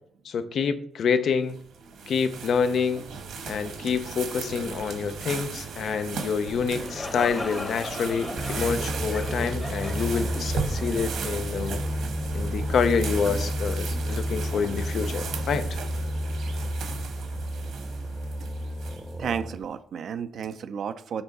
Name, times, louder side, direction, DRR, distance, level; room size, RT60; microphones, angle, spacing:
voice 1, 0.2-1.6 2.1-3.1 3.5-11.8 12.3-15.8, left 6 dB, 60° left, 0.6 m, -27 dB
sound 1, 1.5-19.3, right 5 dB, 75° right, 1.4 m, -36 dB
sound 2, 6.6-12.3, left 2 dB, 25° left, 1.0 m, -38 dB
sound 3, 8.4-19.6, equal, 10° right, 0.7 m, -31 dB
voice 2, 19.2-21.2, right 7 dB, 60° right, 0.5 m, -32 dB
7.1 x 3.6 x 5.3 m
cardioid pair, 90°, 0 cm